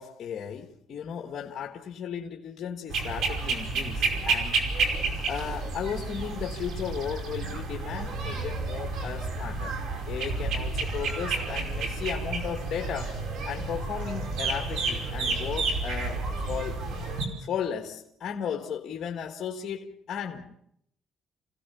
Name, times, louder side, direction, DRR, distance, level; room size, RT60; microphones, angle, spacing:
voice 1, 0.0-4.6 5.2-9.8 10.1-16.8 17.4-20.5, left 8 dB, 50° left, 1.7 m, -35 dB
sound 1, 2.9-17.3, right 3 dB, 75° right, 5.1 m, -30 dB
29.0 x 16.5 x 7.0 m
cardioid pair, 125°, 0 cm